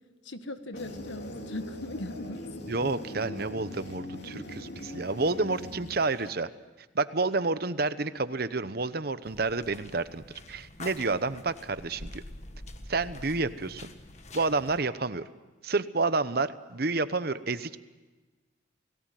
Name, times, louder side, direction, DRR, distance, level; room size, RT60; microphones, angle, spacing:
voice 1, 0.2-2.4 2.7-2.8, left 1 dB, 70° left, 9 dB, 1.6 m, -39 dB
sound 1, 0.7-6.3, left 1 dB, 55° left, 3.3 m, -41 dB
voice 2, 2.7-6.5 6.9-12.2 12.9-13.9 14.3-15.2 15.6-17.8, right 3 dB, 50° right, 13 dB, 0.9 m, -29 dB
sound 2, 9.2-14.8, left 2 dB, 35° left, 1.6 m, -46 dB
30.0 x 18.5 x 9.2 m, 1.2 s
head